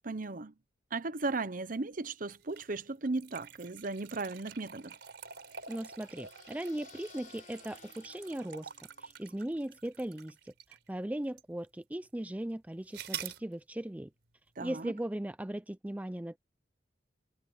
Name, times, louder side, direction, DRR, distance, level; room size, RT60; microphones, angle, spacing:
voice 1, 0.0-0.5 0.9-5.0 14.6-14.9, right 3 dB, 50° right, 0.9 m, -36 dB
sound 1, 2.4-10.9 11.4-11.5 12.9-13.4, right 8 dB, 65° right, 4.8 m, -47 dB
sound 2, 4.9-9.4, left 7 dB, 45° left, 4.6 m, -60 dB
voice 2, 5.7-8.7 9.0-10.5 10.9-14.1 14.6-16.4, right 1 dB, 10° right, 0.4 m, -38 dB
head